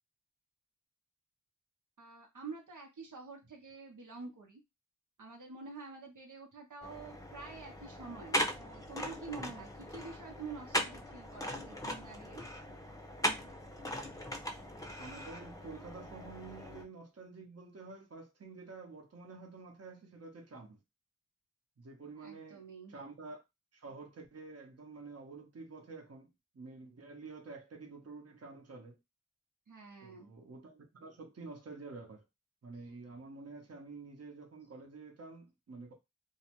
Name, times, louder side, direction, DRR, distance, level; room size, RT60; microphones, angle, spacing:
voice 1, 2.0-4.6 5.2-12.4 22.2-22.9 29.7-30.3, right 4 dB, 85° right, 0.8 m, -48 dB
sound 1, 6.8-16.8, equal, 10° left, 0.6 m, -39 dB
voice 2, 15.0-20.8 21.8-23.4 23.7-29.0 30.0-32.2 32.6-35.9, right 3 dB, 55° right, 0.8 m, -49 dB
2.7 x 2.1 x 2.9 m
wide cardioid pair, 55°, 30 cm